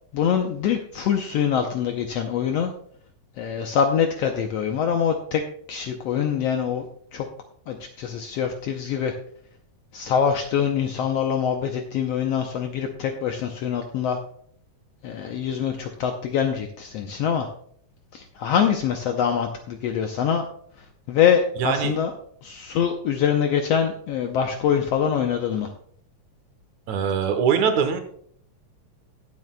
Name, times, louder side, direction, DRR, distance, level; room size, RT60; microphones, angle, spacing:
voice 1, 0.1-2.7 3.4-5.4 5.7-6.9 7.1-7.3 7.7-9.1 9.9-14.2 15.0-17.5 18.1-20.5 21.1-22.1 22.4-25.7, left 8 dB, 75° left, 4 dB, 1.5 m, -24 dB
voice 2, 21.6-21.9 26.9-28.0, right 7 dB, 70° right, 7 dB, 2.2 m, -22 dB
19.0 x 7.6 x 2.2 m, 0.62 s
omnidirectional pair, 3.6 m